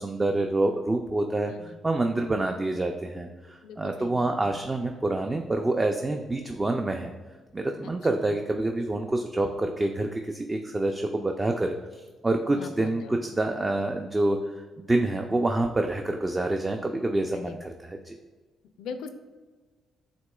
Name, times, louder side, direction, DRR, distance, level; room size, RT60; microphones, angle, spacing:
voice 1, 0.0-7.1 7.5-18.2, right 2 dB, 20° right, 4 dB, 0.3 m, -27 dB
voice 2, 1.5-1.8 3.6-4.3 7.8-7.9 12.5-13.2 17.3-17.6 18.8-19.1, left 5 dB, 85° left, 8 dB, 0.4 m, -40 dB
7.8 x 3.0 x 2.2 m, 1.3 s
cardioid pair, 90°, 0 cm